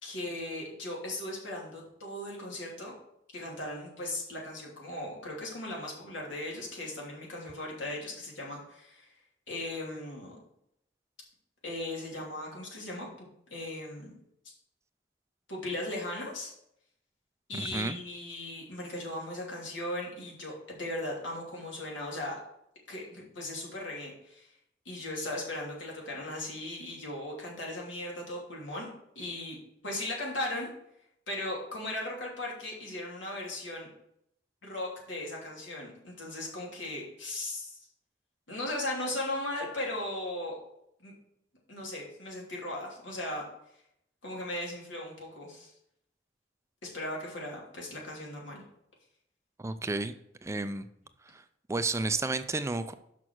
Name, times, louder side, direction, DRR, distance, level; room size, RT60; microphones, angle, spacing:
voice 1, 0.0-2.9 3.3-9.1 9.5-10.3 11.6-14.1 15.5-16.5 17.5-22.4 22.9-24.5 24.8-28.9 29.1-29.6 29.8-30.7 31.3-33.9 34.6-37.8 38.5-40.6 41.0-41.1 41.7-43.4 44.2-45.7 46.8-48.6, left 1 dB, 90° left, -3 dB, 3.0 m, -37 dB
voice 2, 17.5-18.0 49.6-50.1 50.4-50.8 51.7-52.9, right 3 dB, 15° right, 11 dB, 0.4 m, -31 dB
6.1 x 6.0 x 6.3 m, 0.76 s
head